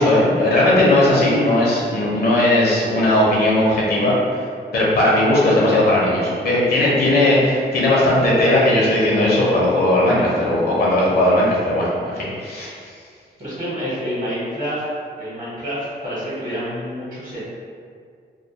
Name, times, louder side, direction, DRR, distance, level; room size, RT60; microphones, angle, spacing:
voice 1, 0.0-4.1 4.7-12.7, left 1 dB, 60° left, -6 dB, 0.6 m, -17 dB
voice 2, 13.4-14.8 15.2-17.4, equal, 50° right, -10 dB, 1.0 m, -28 dB
2.2 x 2.2 x 2.7 m, 2.1 s
wide cardioid pair, 145°, 18 cm